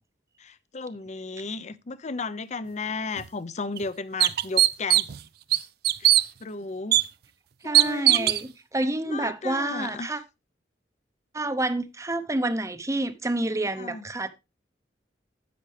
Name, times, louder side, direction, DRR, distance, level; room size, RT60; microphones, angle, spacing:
voice 1, 0.4-5.1 6.0-7.0 7.6-8.4 9.1-10.2 13.8-14.0, left 4 dB, 40° left, 0.6 m, -34 dB
sound 1, 3.2-3.3 3.8-3.9 4.2-5.2 5.5-6.2 6.9-7.0 7.7-8.4, right 13 dB, 60° right, 0.5 m, -19 dB
voice 2, 7.6-8.5 8.7-10.2 11.3-14.3, right 2 dB, 20° right, 0.8 m, -28 dB
10.0 x 8.1 x 3.3 m
head